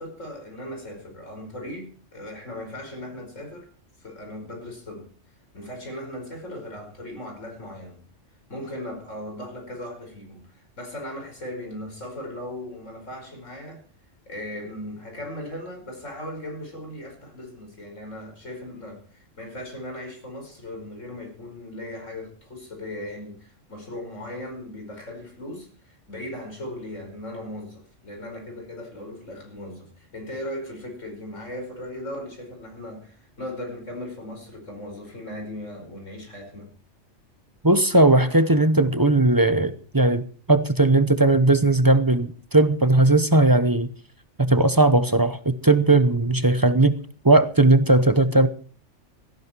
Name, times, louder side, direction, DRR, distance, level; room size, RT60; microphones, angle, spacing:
voice 1, 0.0-3.7 4.0-5.1 5.5-8.0 8.5-13.8 14.3-36.7, left 1 dB, 80° left, 5.7 m, -38 dB
voice 2, 37.6-43.9 44.4-47.0 47.2-48.5, right 2 dB, 20° right, 0.8 m, -18 dB
17.5 x 14.5 x 4.6 m
omnidirectional pair, 1.3 m